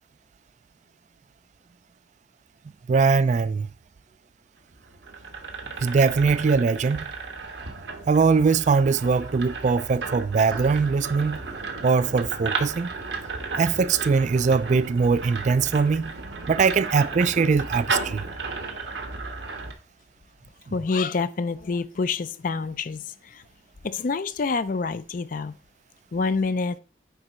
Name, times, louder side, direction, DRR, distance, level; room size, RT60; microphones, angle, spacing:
voice 1, 2.9-3.7 5.8-7.1 8.1-11.4 11.8-12.9 13.6-16.1 16.5-18.2 20.7-20.8, right 5 dB, 40° right, 0.3 m, -21 dB
sound 1, 4.7-19.7, right 4 dB, 85° right, 1.2 m, -34 dB
voice 2, 20.7-23.4 23.8-25.6 26.1-26.8, left 4 dB, 50° left, 0.4 m, -27 dB
9.4 x 3.9 x 4.3 m
head